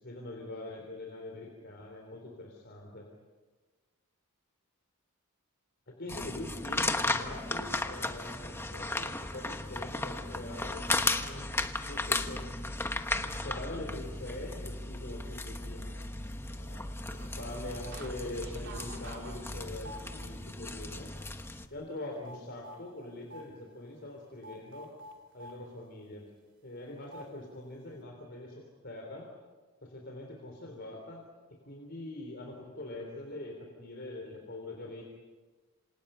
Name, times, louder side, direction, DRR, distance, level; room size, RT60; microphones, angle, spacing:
voice 1, 0.0-3.1 5.9-11.5 11.8-12.7 13.2-16.0 16.5-16.8 17.1-21.1 21.7-24.9 25.3-26.2 26.6-29.3 29.8-31.2 31.6-35.0, left 1 dB, 50° left, 0 dB, 3.7 m, -43 dB
sound 1, 6.1-21.7, left 2 dB, 10° left, 1.1 m, -35 dB
sound 2, 17.1-18.1 18.4-20.5 21.0-21.2 21.5-22.8 23.3-23.5 24.4-25.6 27.1-27.3, right 1 dB, 55° right, 3.1 m, -48 dB
27.5 x 27.5 x 5.7 m, 1.3 s
head